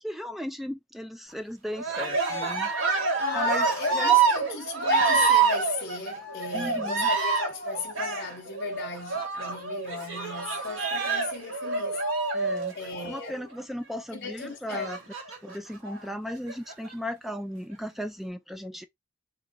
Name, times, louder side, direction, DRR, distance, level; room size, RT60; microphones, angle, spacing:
voice 1, 0.0-2.7 3.3-3.7 3.9-4.2 6.5-7.1 12.3-12.7 13.1-15.0 15.4-18.9, equal, ahead, 0.3 m, -36 dB
Cheering, 1.7-13.4 14.7-15.6 16.3-16.9, right 5 dB, 75° right, 1.6 m, -27 dB
voice 2, 2.8-12.0 12.7-13.4 14.1-14.9 15.8-16.2, left 4 dB, 55° left, 0.8 m, -36 dB
3.5 x 3.0 x 3.8 m
head